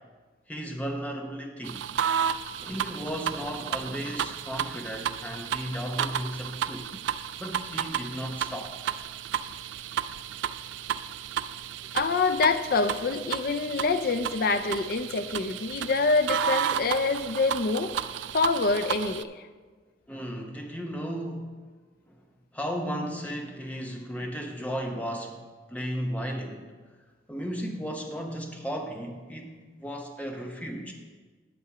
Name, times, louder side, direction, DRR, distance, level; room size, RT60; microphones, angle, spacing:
voice 1, 0.5-1.8 2.6-6.9 7.4-8.7 20.1-21.6 22.1-22.2 22.5-25.4 25.7-26.7 27.3-30.9, equal, 10° left, 2 dB, 0.8 m, -35 dB
Floppy disk drive - read, 1.6-19.2, right 9 dB, 75° right, 0.3 m, -33 dB
voice 2, 11.9-17.9 18.3-19.3, left 3 dB, 50° left, 11 dB, 0.4 m, -26 dB
8.4 x 6.8 x 4.9 m, 1.4 s
head